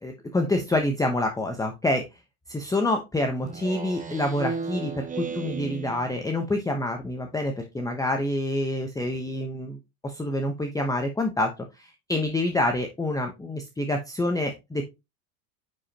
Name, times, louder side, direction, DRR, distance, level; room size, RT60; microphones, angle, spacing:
voice 1, 0.0-2.1 2.5-14.8, left 1 dB, 10° left, 4 dB, 0.9 m, -27 dB
Speech synthesizer, 3.4-6.5, right 5 dB, 20° right, 1.1 m, -34 dB
9.6 x 5.1 x 2.9 m, 0.24 s
supercardioid pair, 115°, 43 cm